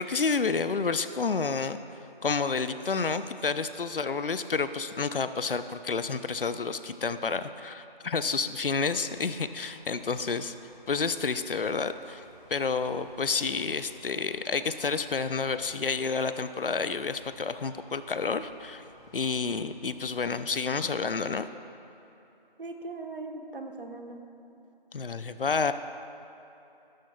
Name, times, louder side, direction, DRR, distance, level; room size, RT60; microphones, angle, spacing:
voice 1, 0.0-10.5 10.9-12.2 12.5-18.9 19.1-21.5 24.9-25.7, left 4 dB, 70° left, 11 dB, 0.6 m, -30 dB
sound 1, 9.0-19.8, equal, 30° left, 2.4 m, -56 dB
voice 2, 22.6-24.2, right 3 dB, 65° right, 4 dB, 1.3 m, -39 dB
14.0 x 13.0 x 2.3 m, 2.9 s
figure-of-eight pair, 170°, 29 cm